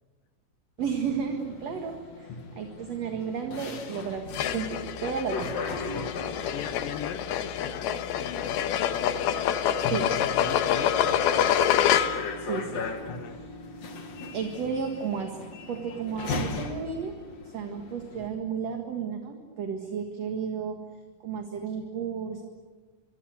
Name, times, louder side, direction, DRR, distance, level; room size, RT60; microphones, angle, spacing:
sound 1, 0.8-18.3, left 4 dB, 50° left, 3.0 m, -39 dB
voice 1, 0.8-5.5 9.8-10.1 12.4-12.9 13.3-13.4 14.3-15.4 15.7-17.1 17.4-20.8 21.2-22.4, right 6 dB, 50° right, 4 dB, 2.6 m, -33 dB
sound 2, 4.3-12.4, left 9 dB, 85° left, 3.1 m, -27 dB
voice 2, 6.5-9.4 9.8-11.9 12.9-13.4, left 7 dB, 70° left, 10 dB, 2.8 m, -40 dB
25.0 x 24.5 x 8.2 m, 1.4 s
omnidirectional pair, 4.4 m